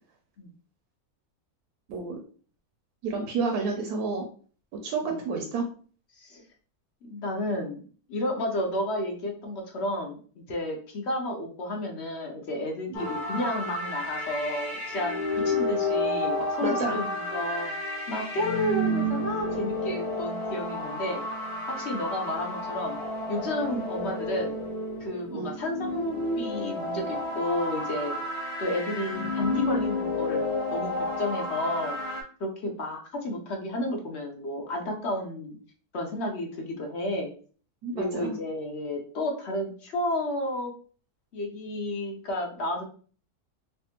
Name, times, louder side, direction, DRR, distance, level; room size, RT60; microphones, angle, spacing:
voice 1, 3.0-4.2 4.8-5.7 13.0-13.1 16.6-17.0 25.3-25.5 37.8-38.4, right 4 dB, 80° right, 2 dB, 1.1 m, -30 dB
voice 2, 7.0-7.8 8.1-17.7 18.1-21.2 21.7-23.0 23.3-24.6 25.0-28.1 28.6-30.4 30.7-32.0 32.4-35.6 35.9-37.3 37.9-40.7 41.3-42.8, left 1 dB, 55° left, 1 dB, 0.8 m, -31 dB
sound 1, 12.9-32.2, left 1 dB, 80° left, 1.6 m, -31 dB
3.3 x 2.1 x 2.8 m, 0.42 s
omnidirectional pair, 1.6 m